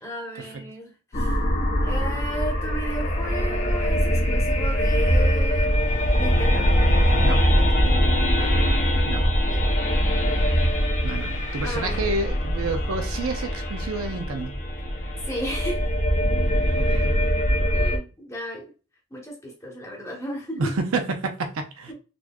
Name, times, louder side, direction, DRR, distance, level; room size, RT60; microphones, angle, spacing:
voice 1, 0.0-1.4 1.8-5.7 6.2-6.6 8.4-8.5 9.2-9.7 11.6-12.2 15.3-15.8 17.6-18.7 19.1-20.7 21.9-22.0, equal, 15° left, 1.0 m, -34 dB
sound 1, 1.1-18.0, equal, 35° left, 0.6 m, -22 dB
voice 2, 11.0-14.6 16.7-17.1 20.5-21.9, right 3 dB, 65° right, 0.6 m, -29 dB
4.2 x 2.9 x 2.3 m
head